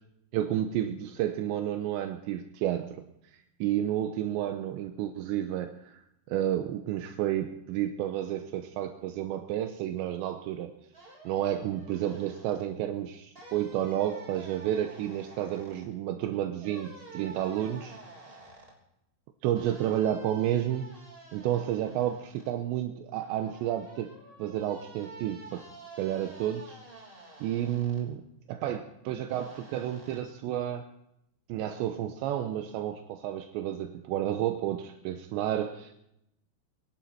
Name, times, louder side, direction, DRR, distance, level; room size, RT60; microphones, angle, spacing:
voice 1, 0.3-3.0 3.6-6.0 6.3-10.7 11.3-18.0 19.4-20.9 21.3-24.1 24.4-25.6 26.0-26.8 27.4-28.2 28.5-30.8 31.5-36.1, right 11 dB, 80° right, 6 dB, 2.7 m, -31 dB
sound 1, 10.9-12.6 13.4-15.9 16.6-18.7 19.6-22.5 23.1-28.0 29.3-30.2, right 2 dB, 15° right, 2.6 m, -50 dB
24.0 x 11.0 x 4.6 m, 0.80 s
omnidirectional pair, 5.8 m